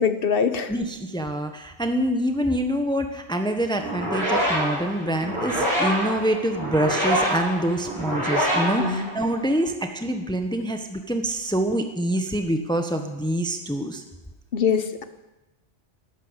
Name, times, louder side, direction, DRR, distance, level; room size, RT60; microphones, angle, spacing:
voice 1, 0.0-0.7 8.8-9.1 14.5-15.0, left 6 dB, 60° left, 10 dB, 1.2 m, -23 dB
voice 2, 0.7-14.0, right 1 dB, 5° left, 5 dB, 1.1 m, -26 dB
sound 1, 3.8-9.6, equal, 65° right, 7.0 m, -26 dB
12.5 x 12.5 x 8.1 m, 1.0 s
omnidirectional pair, 1.1 m